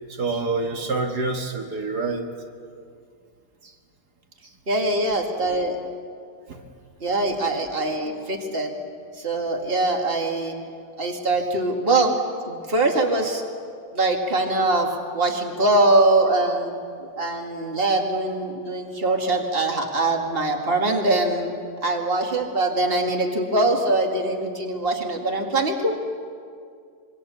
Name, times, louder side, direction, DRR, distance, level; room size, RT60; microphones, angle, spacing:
voice 1, 0.1-2.3 3.6-3.7 6.5-6.6, right 3 dB, 80° right, 2 dB, 2.3 m, -27 dB
voice 2, 4.7-5.8 7.0-8.8 9.2-10.6 11.0-12.1 12.4-13.4 13.9-21.5 21.8-26.0, right 2 dB, 35° right, 2 dB, 2.4 m, -23 dB
26.0 x 23.5 x 7.1 m, 2.2 s
omnidirectional pair, 1.7 m